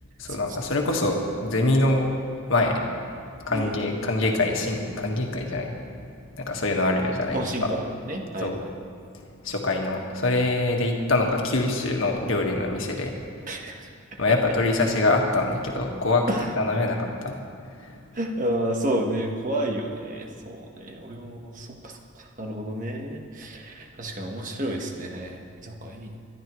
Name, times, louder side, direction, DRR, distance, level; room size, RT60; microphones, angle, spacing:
voice 1, 0.2-2.1 2.5-2.8 3.5-5.8 6.4-7.7 8.4-8.6 9.1-13.1 14.2-16.3 16.6-17.4 17.8-18.0, left 2 dB, 75° left, 1 dB, 1.7 m, -24 dB
voice 2, 7.3-8.7 13.5-13.9 16.3-16.5 18.1-26.2, right 1 dB, 40° right, 1 dB, 1.4 m, -31 dB
22.0 x 12.0 x 3.2 m, 2.4 s
head